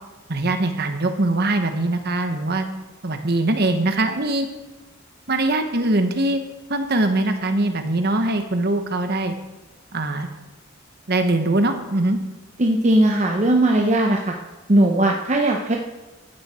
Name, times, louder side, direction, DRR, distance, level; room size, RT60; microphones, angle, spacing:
voice 1, 0.3-2.7 3.0-4.5 5.3-6.4 6.7-9.3 9.9-10.3 11.1-12.2, right 2 dB, 50° right, 7 dB, 1.2 m, -22 dB
voice 2, 12.6-14.3 14.7-15.8, right 1 dB, 35° right, 1 dB, 0.8 m, -18 dB
15.0 x 9.8 x 4.4 m, 1.1 s
head